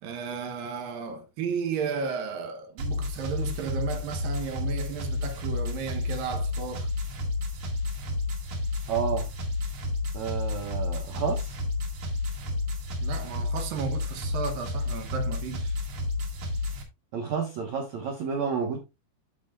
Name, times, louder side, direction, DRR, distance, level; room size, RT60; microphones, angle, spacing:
voice 1, 0.0-6.9 13.0-15.8, right 6 dB, 70° right, 2.3 m, -34 dB
sound 1, 2.8-16.8, left 2 dB, 55° right, 3.1 m, -31 dB
voice 2, 8.9-9.3 10.1-11.6 17.1-18.8, right 6 dB, 90° right, 1.6 m, -30 dB
14.0 x 5.5 x 2.4 m
omnidirectional pair, 5.2 m